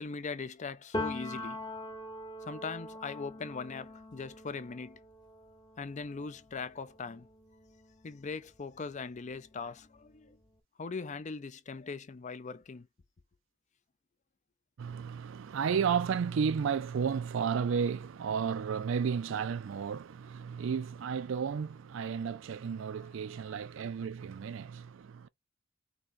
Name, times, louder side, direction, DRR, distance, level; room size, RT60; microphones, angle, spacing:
voice 1, 0.0-1.6 2.5-5.0 5.8-7.3 8.0-10.4 10.8-12.9 23.0-23.1, left 4 dB, 35° left, 0.5 m, -40 dB
Piano, 0.9-8.5 8.9-10.4, left 1 dB, 20° left, 0.9 m, -43 dB
voice 2, 14.8-25.3, right 6 dB, 65° right, 0.4 m, -33 dB
3.7 x 2.9 x 4.1 m
head